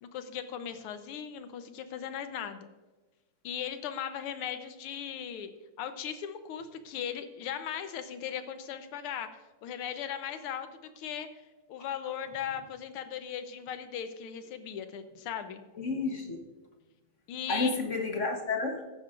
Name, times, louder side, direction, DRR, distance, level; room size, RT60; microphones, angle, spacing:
voice 1, 0.0-2.7 3.4-5.5 5.8-11.3 11.7-15.6 17.3-17.7, left 9 dB, 80° left, 10 dB, 1.7 m, -38 dB
voice 2, 15.8-16.4 17.5-18.8, left 3 dB, 45° left, 3 dB, 1.0 m, -30 dB
14.5 x 9.7 x 2.5 m, 1.2 s
omnidirectional pair, 2.4 m